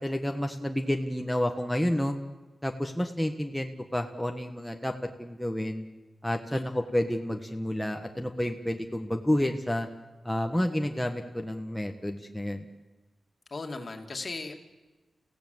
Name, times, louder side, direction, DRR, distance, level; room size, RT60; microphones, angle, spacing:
voice 1, 0.0-2.2 2.6-4.9 5.2-5.8 6.2-9.9 10.2-12.7, left 1 dB, 5° left, 4 dB, 1.3 m, -30 dB
voice 2, 13.5-14.5, left 3 dB, 45° left, 4 dB, 2.6 m, -37 dB
29.0 x 16.5 x 8.0 m, 1.2 s
wide cardioid pair, 85°, 0 cm